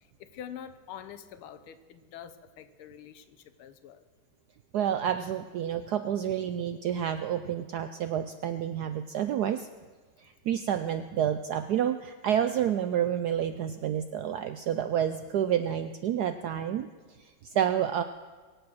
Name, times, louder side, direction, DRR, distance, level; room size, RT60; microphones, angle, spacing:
voice 1, 0.2-4.0 17.5-17.8, left 9 dB, 90° left, 12 dB, 1.7 m, -46 dB
voice 2, 4.7-9.7 10.2-16.9 17.2-18.0, right 9 dB, 80° right, 9 dB, 0.9 m, -29 dB
23.0 x 8.2 x 6.3 m, 1.5 s
omnidirectional pair, 2.3 m